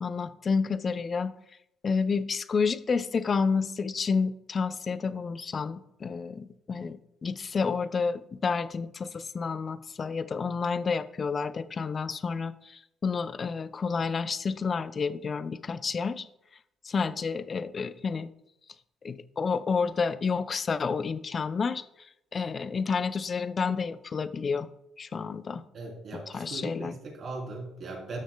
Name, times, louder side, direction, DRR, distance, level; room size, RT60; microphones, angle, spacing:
voice 1, 0.0-1.3 1.8-16.3 16.8-18.3 19.0-21.8 22.3-24.7 25.0-25.6 26.3-26.9, left 5 dB, 40° left, 13 dB, 0.5 m, -30 dB
voice 2, 25.7-28.2, right 3 dB, 60° right, -1 dB, 3.3 m, -39 dB
13.0 x 6.3 x 2.3 m, 0.81 s
supercardioid pair, 75°, 0 cm